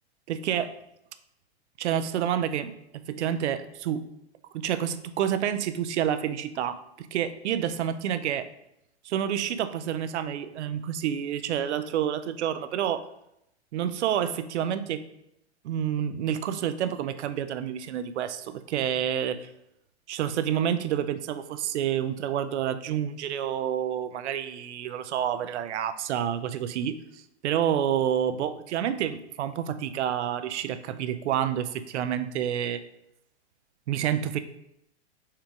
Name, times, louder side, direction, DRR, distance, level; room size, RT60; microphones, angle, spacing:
voice 1, 0.3-0.8 1.8-4.1 4.5-8.4 9.0-13.1 13.7-15.0 15.6-19.5 20.1-32.8 33.9-34.4, right 9 dB, 80° right, 11 dB, 0.5 m, -29 dB
4.4 x 2.4 x 4.6 m, 0.82 s
hypercardioid pair, 130°, 34 cm